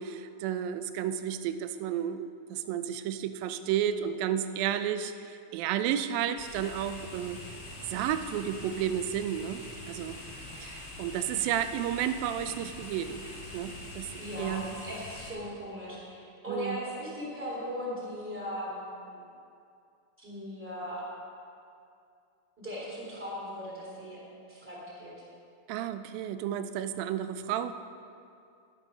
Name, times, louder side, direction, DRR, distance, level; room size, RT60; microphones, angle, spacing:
voice 1, 0.0-7.4 7.9-10.2 10.6-13.2 13.5-14.1 14.4-14.7 16.5-16.8 25.7-27.7, right 10 dB, 85° right, 11 dB, 2.3 m, -32 dB
sound 1, 6.3-15.3, left 2 dB, 25° left, 1.9 m, -44 dB
voice 2, 14.2-19.2 20.2-21.0 22.6-24.2 24.5-25.1, equal, 5° right, -5 dB, 2.7 m, -38 dB
11.5 x 11.0 x 5.5 m, 2.5 s
omnidirectional pair, 4.1 m